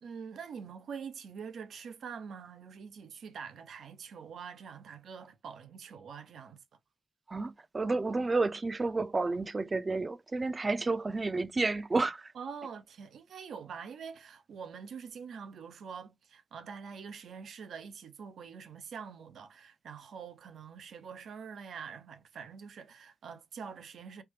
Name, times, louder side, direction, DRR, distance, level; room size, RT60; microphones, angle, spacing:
voice 1, 0.0-6.6 12.3-24.2, right 6 dB, 85° right, 0.6 m, -45 dB
voice 2, 7.3-12.3, right 3 dB, 40° right, 0.4 m, -31 dB
3.3 x 2.1 x 3.1 m
cardioid pair, 65°, 0 cm